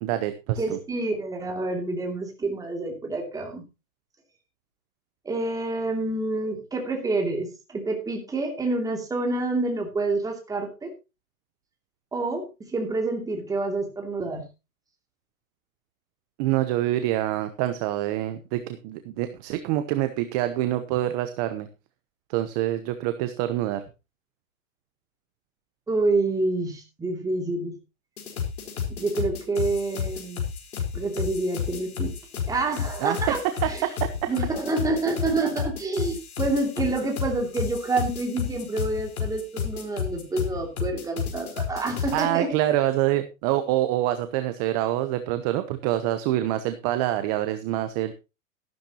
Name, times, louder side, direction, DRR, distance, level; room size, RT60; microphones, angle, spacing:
voice 1, 0.0-0.8 16.4-21.7 22.3-23.8 33.0-33.2 33.4-34.3 42.1-48.1, right 14 dB, 30° right, 10 dB, 0.9 m, -26 dB
voice 2, 0.6-3.6 5.2-10.9 12.1-14.5 25.9-27.7 29.0-30.4 30.9-32.1 32.5-33.8 34.3-42.5, right 2 dB, 10° right, 2 dB, 2.7 m, -28 dB
sound 1, 28.2-42.2, left 7 dB, 80° left, 4.6 m, -31 dB
13.5 x 12.0 x 3.0 m, 0.28 s
hypercardioid pair, 150°, 43 cm